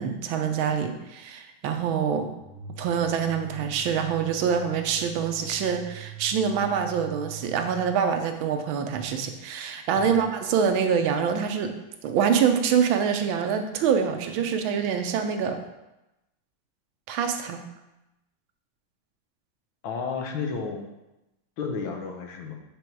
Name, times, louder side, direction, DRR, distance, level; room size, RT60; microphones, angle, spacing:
voice 1, 0.0-2.3 2.8-11.7 12.0-15.6 17.1-17.6, right 7 dB, 90° right, 6 dB, 1.5 m, -25 dB
sound 1, 2.4-8.0, right 6 dB, 30° left, 1.8 m, -43 dB
voice 2, 9.9-10.3 19.8-20.9 21.6-22.6, left 5 dB, 80° left, 3 dB, 1.7 m, -32 dB
8.6 x 3.5 x 4.6 m, 0.95 s
omnidirectional pair, 2.1 m